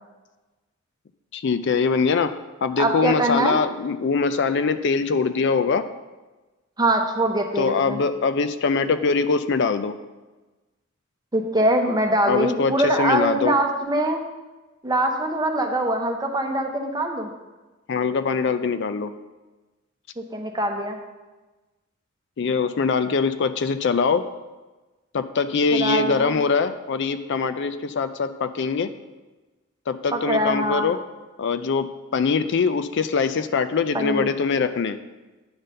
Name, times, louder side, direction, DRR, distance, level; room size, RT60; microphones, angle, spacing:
voice 1, 1.3-2.3 2.6-5.9 7.6-9.9 12.3-13.5 17.9-19.1 22.4-24.2 25.1-28.9 29.9-31.0 31.4-35.0, left 5 dB, 60° left, 11 dB, 0.4 m, -23 dB
voice 2, 2.8-3.6 6.8-8.0 11.3-14.2 14.8-17.3 20.2-21.0 25.7-26.3 30.1-30.9 33.9-34.3, right 1 dB, 20° right, 3 dB, 0.8 m, -23 dB
9.6 x 3.9 x 6.5 m, 1.2 s
head